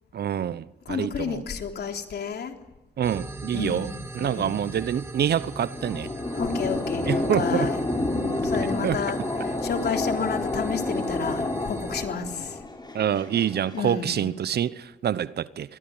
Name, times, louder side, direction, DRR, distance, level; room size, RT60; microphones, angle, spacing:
voice 1, 0.1-1.4 3.0-6.1 7.0-7.7 8.5-9.0 12.9-15.8, right 9 dB, 65° right, 1.0 m, -27 dB
voice 2, 0.9-2.5 3.5-4.6 6.2-7.8 8.2-12.6 13.7-14.2, left 6 dB, 65° left, 3.6 m, -31 dB
sound 1, 3.0-12.0, right 1 dB, 15° right, 3.0 m, -40 dB
sound 2, 5.3-13.8, left 2 dB, 25° left, 6.9 m, -29 dB
24.0 x 21.0 x 8.9 m
supercardioid pair, 55°, 18 cm